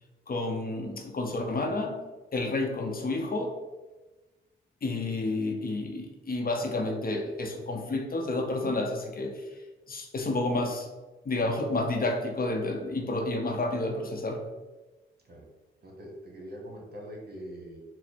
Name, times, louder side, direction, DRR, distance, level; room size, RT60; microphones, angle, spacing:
voice 1, 0.3-2.0 2.3-3.6 4.8-9.6 9.9-10.9 11.2-14.4, left 2 dB, 45° left, 3 dB, 0.7 m, -30 dB
voice 2, 15.8-17.8, equal, 50° right, -1 dB, 1.2 m, -43 dB
4.3 x 2.0 x 4.2 m, 1.2 s
supercardioid pair, 50°, 21 cm